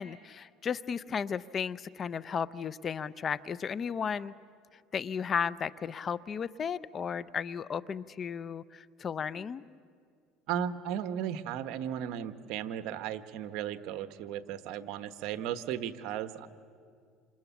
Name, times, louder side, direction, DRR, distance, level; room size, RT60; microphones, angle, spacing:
voice 1, 0.0-4.3 4.9-9.6, left 7 dB, 35° left, 17 dB, 0.6 m, -34 dB
voice 2, 10.5-16.5, right 9 dB, 65° right, 10 dB, 1.3 m, -35 dB
28.0 x 28.0 x 7.2 m, 2.2 s
supercardioid pair, 115°, 0 cm